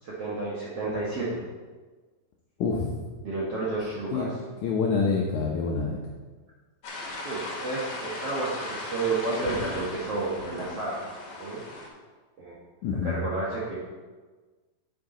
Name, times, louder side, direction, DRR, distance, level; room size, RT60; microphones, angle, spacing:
voice 1, 0.0-1.4 3.2-4.3 7.2-11.1 11.4-11.6 12.4-12.6 12.9-13.8, right 3 dB, 60° right, -6 dB, 1.6 m, -31 dB
voice 2, 2.6-2.9 4.1-4.3 4.6-6.0 12.8-13.2, left 5 dB, 80° left, -1 dB, 1.7 m, -26 dB
sound 1, 6.8-11.9, left 2 dB, 50° left, 2.0 m, -37 dB
9.2 x 8.4 x 3.8 m, 1.4 s
omnidirectional pair, 4.5 m